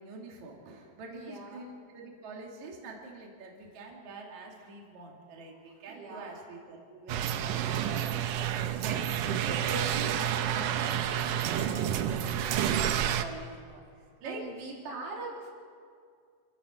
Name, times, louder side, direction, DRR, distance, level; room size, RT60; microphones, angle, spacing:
voice 1, 0.0-8.0 8.3-13.8 14.2-14.4, right 2 dB, 45° right, -1 dB, 3.5 m, -44 dB
voice 2, 1.1-1.7 5.9-6.4 7.7-8.7 14.2-15.5, right 3 dB, 70° right, -2 dB, 5.3 m, -43 dB
sound 1, 7.1-13.2, right 10 dB, 90° right, 1.8 m, -29 dB
27.0 x 15.5 x 6.3 m, 2.2 s
omnidirectional pair, 4.9 m